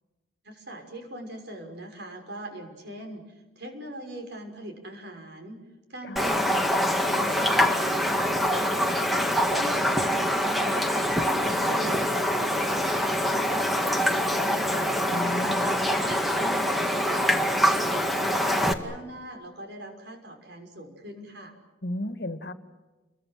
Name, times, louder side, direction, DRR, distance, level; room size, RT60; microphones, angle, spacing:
voice 1, 0.4-5.6 5.9-6.7 7.0-9.1 9.5-14.9 15.4-21.5, right 1 dB, 55° right, 4 dB, 6.3 m, -41 dB
Raindrop, 6.2-18.7, equal, ahead, 2.0 m, -24 dB
voice 2, 15.1-15.6 21.8-22.5, left 1 dB, 55° left, 10 dB, 2.0 m, -33 dB
30.0 x 23.0 x 7.7 m, 1.2 s
head